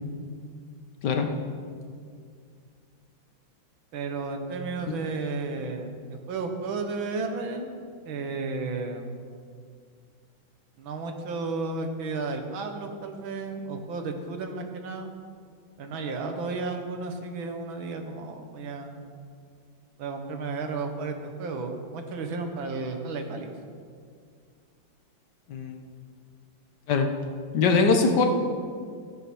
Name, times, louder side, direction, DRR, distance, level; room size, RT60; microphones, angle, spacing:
voice 1, 3.9-7.7 8.1-9.1 10.8-15.1 15.8-19.0 20.0-23.5, right 3 dB, 85° right, 5 dB, 2.0 m, -33 dB
voice 2, 27.5-28.3, left 4 dB, 65° left, 4 dB, 1.6 m, -21 dB
13.0 x 9.6 x 6.1 m, 2.2 s
omnidirectional pair, 2.1 m